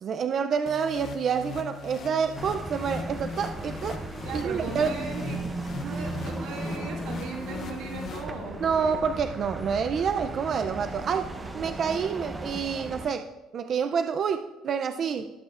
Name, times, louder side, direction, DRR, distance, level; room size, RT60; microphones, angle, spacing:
voice 1, 0.0-4.0 4.3-4.9 8.6-13.3 13.5-15.3, right 6 dB, 40° right, 7 dB, 0.3 m, -28 dB
sound 1, 0.7-8.8, left 5 dB, 40° left, 0.5 m, -39 dB
sound 2, 2.3-13.1, right 2 dB, 15° right, 0.7 m, -37 dB
voice 2, 4.2-5.5 5.7-9.0, right 4 dB, 85° right, -1 dB, 2.1 m, -38 dB
18.0 x 6.2 x 2.4 m, 1.1 s
cardioid pair, 155°, 0 cm